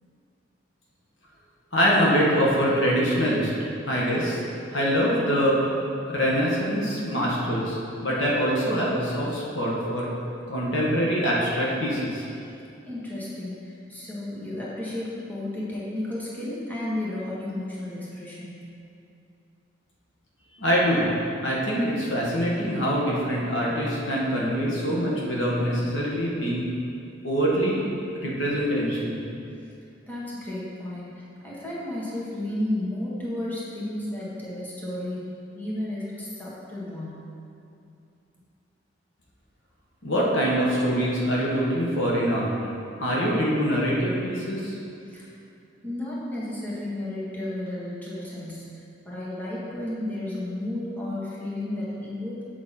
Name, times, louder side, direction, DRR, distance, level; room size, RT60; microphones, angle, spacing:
voice 1, 1.7-3.5 3.8-4.4 4.7-5.6 6.1-10.1 10.5-12.2 20.6-21.1 21.4-26.7 27.2-27.9 28.1-29.2 40.0-42.5 43.0-44.8, equal, 75° left, -5 dB, 1.5 m, -24 dB
voice 2, 12.8-18.7 30.1-31.1 31.4-35.2 35.5-37.2 45.1-45.3 45.8-48.7 49.0-52.4, left 1 dB, 10° left, -8 dB, 1.5 m, -32 dB
7.6 x 5.6 x 4.3 m, 2.6 s
head